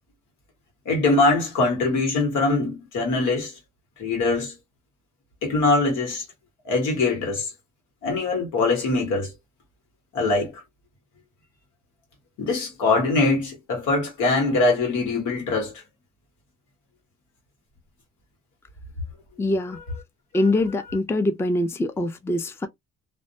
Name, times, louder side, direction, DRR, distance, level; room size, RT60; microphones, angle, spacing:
voice 1, 0.8-3.5 4.0-4.5 5.4-6.2 6.6-7.5 8.0-9.3 10.1-10.5 12.4-15.7, left 3 dB, 85° left, 1.3 m, -22 dB
voice 2, 19.4-19.8 20.3-22.7, left 1 dB, 10° left, 0.4 m, -24 dB
2.5 x 2.1 x 2.7 m
cardioid pair, 90°, 30 cm